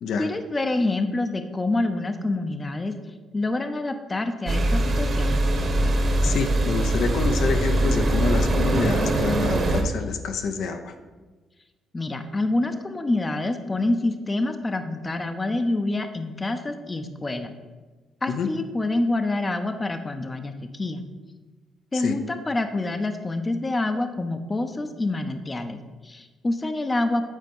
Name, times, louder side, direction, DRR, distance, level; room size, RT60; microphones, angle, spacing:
voice 1, 0.2-2.9 3.3-5.4 11.9-17.5 18.2-21.0 21.9-27.3, left 2 dB, 25° left, 8 dB, 0.6 m, -27 dB
sound 1, 4.5-9.8, right 1 dB, 45° right, 1.3 m, -22 dB
voice 2, 6.2-10.9 18.3-18.5 21.9-22.2, left 5 dB, 75° left, 6 dB, 0.7 m, -27 dB
9.1 x 4.5 x 5.4 m, 1.3 s
cardioid pair, 90°, 0 cm